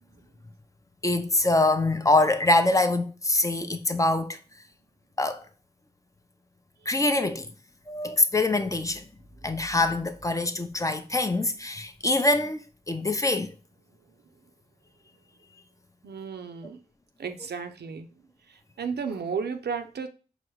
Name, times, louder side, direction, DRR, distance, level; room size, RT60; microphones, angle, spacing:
voice 1, 1.0-4.4 5.2-5.4 6.9-7.5 7.9-9.0 9.4-12.6 12.9-13.5, left 2 dB, 20° left, 0.5 m, -24 dB
voice 2, 16.0-16.8 17.2-18.1 18.5-20.1, right 6 dB, 75° right, 0.6 m, -33 dB
4.8 x 2.1 x 4.5 m
cardioid pair, 65°, 17 cm